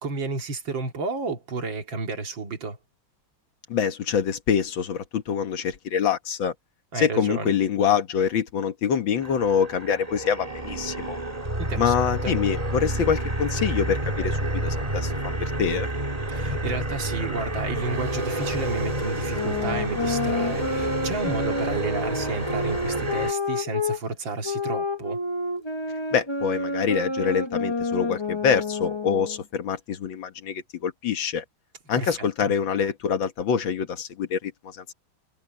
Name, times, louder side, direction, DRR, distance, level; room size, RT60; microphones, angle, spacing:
voice 1, 0.0-2.8 6.9-7.5 11.6-11.9 12.2-12.4 16.3-25.2 31.9-32.5, right 3 dB, 65° right, 3.0 m, -31 dB
voice 2, 3.7-6.5 6.9-11.2 11.8-15.1 15.6-15.9 26.1-31.4 31.9-34.9, left 7 dB, 70° left, 2.1 m, -25 dB
sound 1, 9.2-23.3, right 1 dB, 20° right, 2.4 m, -29 dB
sound 2, 19.3-24.0 24.4-29.4, left 2 dB, 15° left, 1.0 m, -29 dB
omnidirectional pair, 2.2 m